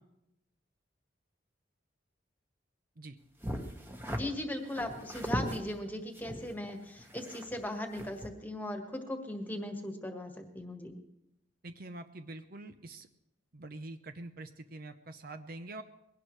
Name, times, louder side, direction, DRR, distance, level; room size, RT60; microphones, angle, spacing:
sound 1, 3.4-4.2 4.7-5.6 6.1-7.6 7.9-8.3, equal, 10° right, 1.4 m, -38 dB
voice 1, 4.1-10.9, left 1 dB, 10° left, 4 dB, 1.6 m, -38 dB
voice 2, 11.6-13.1 13.5-15.8, right 2 dB, 50° right, 9 dB, 0.7 m, -45 dB
21.5 x 17.5 x 3.3 m, 0.85 s
head